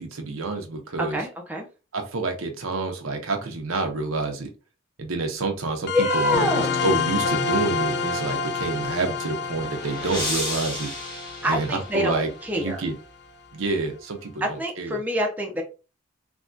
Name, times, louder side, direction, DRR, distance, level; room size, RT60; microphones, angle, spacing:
voice 1, 0.0-1.2 1.9-4.5 5.0-10.9 11.4-12.9 13.5-15.0, right 3 dB, 80° right, 4 dB, 0.7 m, -28 dB
voice 2, 1.0-1.7 5.9-6.8 11.4-12.8 14.4-15.6, equal, 10° right, 0 dB, 0.5 m, -26 dB
sound 1, 5.9-13.0, left 5 dB, 50° left, 0.3 m, -28 dB
sound 2, 9.2-12.4, left 2 dB, 20° left, 1.4 m, -33 dB
3.4 x 2.3 x 2.5 m, 0.31 s
head